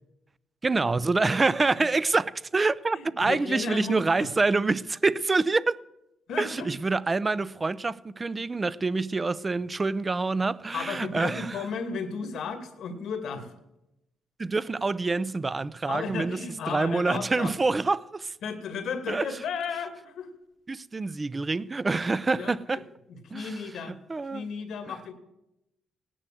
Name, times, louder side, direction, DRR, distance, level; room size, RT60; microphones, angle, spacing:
voice 1, 0.6-5.8 6.4-11.6 14.4-16.4 16.7-18.4 19.1-19.3 20.7-22.8 23.3-23.6 23.9-24.5 24.9-25.1, right 3 dB, 25° right, 0.5 m, -26 dB
voice 2, 2.9-4.4 6.3-6.7 10.7-13.5 15.9-17.5 18.4-20.3 22.4-22.6 23.3-23.9 24.3-25.1, left 5 dB, 75° left, 2.4 m, -34 dB
17.0 x 10.0 x 7.7 m
cardioid pair, 90°, 0 cm